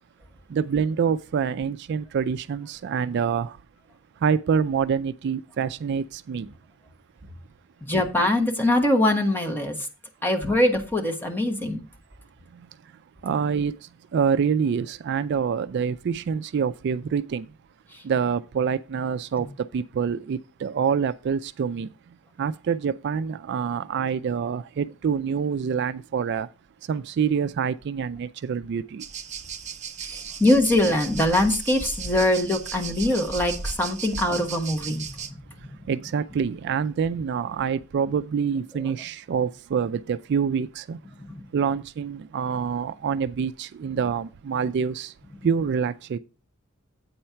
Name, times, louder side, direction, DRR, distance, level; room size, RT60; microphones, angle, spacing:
voice 1, 0.5-3.6 4.2-6.5 13.2-13.7 14.1-17.5 18.0-19.5 19.7-21.9 22.4-26.5 26.9-29.0 35.9-41.0 41.5-45.1 45.4-46.2, right 6 dB, 55° right, 0.3 m, -26 dB
voice 2, 7.8-9.9 10.2-11.8 17.9-18.0 19.4-19.5 30.0-35.1, left 1 dB, 10° left, 1.3 m, -23 dB
sound 1, 29.0-35.3, right 5 dB, 35° right, 0.7 m, -35 dB
8.6 x 4.4 x 5.6 m
head